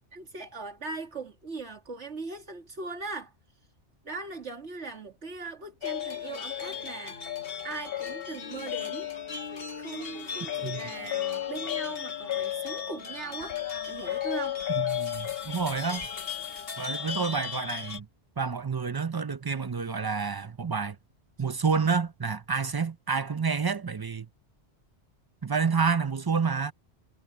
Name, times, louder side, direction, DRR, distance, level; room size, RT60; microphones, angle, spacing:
voice 1, 0.1-3.3 4.0-9.1 9.7-13.6 13.9-14.6, right 3 dB, 80° right, 2.7 m, -39 dB
sound 1, 5.8-18.0, left 9 dB, 55° left, 1.5 m, -34 dB
voice 2, 14.7-16.1 16.8-18.1 18.4-21.0 21.4-24.3 25.4-26.7, right 5 dB, 35° right, 0.3 m, -29 dB
omnidirectional pair, 1.2 m